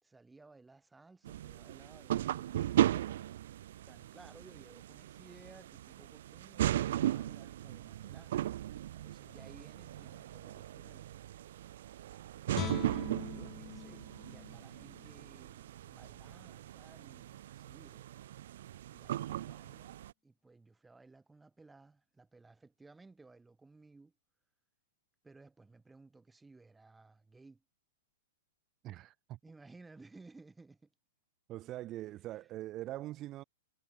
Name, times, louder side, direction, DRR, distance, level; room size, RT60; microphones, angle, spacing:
voice 1, 0.0-2.9 3.8-8.3 9.0-11.1 12.6-14.0 14.3-18.1 18.9-24.1 25.2-27.6 29.4-30.9, right 3 dB, 5° right, 1.8 m, -59 dB
sound 1, 1.2-20.1, right 12 dB, 60° right, 0.7 m, -37 dB
Guitar, 12.5-15.7 16.1-16.3, left 13 dB, 25° left, 0.5 m, -44 dB
voice 2, 28.8-29.4 31.5-33.4, right 15 dB, 25° right, 1.1 m, -43 dB
hypercardioid pair, 155°, 0 cm